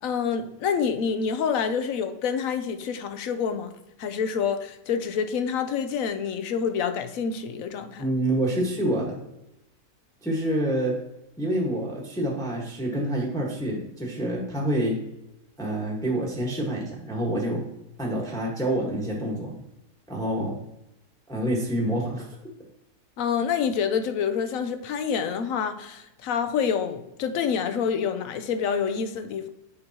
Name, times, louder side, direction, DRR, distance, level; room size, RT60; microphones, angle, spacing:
voice 1, 0.0-3.7 4.0-8.0 23.2-29.5, left 7 dB, 65° left, 1.0 m, -27 dB
voice 2, 8.0-9.2 10.2-11.0 11.4-15.0 15.6-17.6 18.0-19.5 20.1-20.6 21.3-22.2, right 1 dB, ahead, 1.3 m, -27 dB
8.1 x 5.1 x 2.9 m
omnidirectional pair, 1.6 m